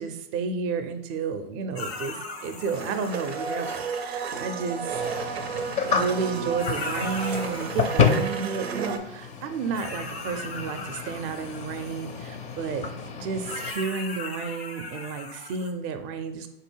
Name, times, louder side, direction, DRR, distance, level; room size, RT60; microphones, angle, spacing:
voice 1, 0.0-5.0 5.9-12.9 13.2-16.5, right 5 dB, 40° right, 9 dB, 0.5 m, -31 dB
sound 1, 1.8-4.6 6.2-6.3 6.6-8.7 9.7-12.6 13.4-15.7, left 3 dB, 90° left, 0.8 m, -39 dB
Domestic sounds home sounds, 2.7-9.0, right 5 dB, 90° right, 0.6 m, -32 dB
sound 2, 4.9-13.7, left 5 dB, 25° left, 0.4 m, -30 dB
3.9 x 2.7 x 4.5 m, 0.87 s
hypercardioid pair, 105°, 31 cm